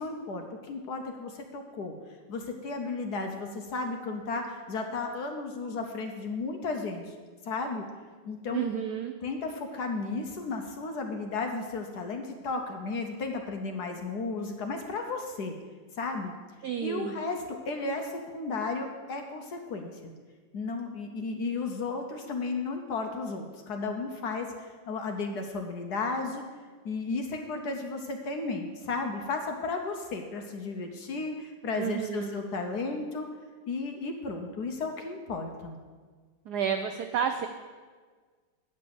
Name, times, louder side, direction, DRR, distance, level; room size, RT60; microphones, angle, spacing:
voice 1, 0.0-1.9 2.3-7.1 7.4-7.8 8.2-8.6 9.2-15.5 16.0-16.3 16.8-20.1 20.5-26.4 26.8-33.3 33.7-35.8, left 3 dB, 60° left, 4 dB, 1.2 m, -34 dB
voice 2, 8.5-9.1 16.6-17.2 31.7-32.4 36.5-37.5, right 8 dB, 85° right, 7 dB, 0.9 m, -31 dB
9.2 x 5.4 x 7.6 m, 1.5 s
omnidirectional pair, 2.3 m